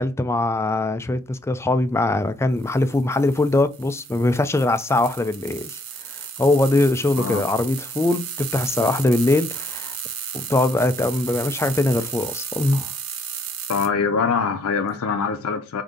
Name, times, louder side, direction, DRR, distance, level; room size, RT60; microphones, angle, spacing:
voice 1, 0.0-5.8 6.1-9.9 10.3-12.9, left 2 dB, 10° left, 0.3 m, -21 dB
sound 1, 2.6-13.9, right 9 dB, 70° right, 0.8 m, -34 dB
voice 2, 13.7-15.8, left 5 dB, 80° left, 0.5 m, -23 dB
5.0 x 2.6 x 3.7 m
head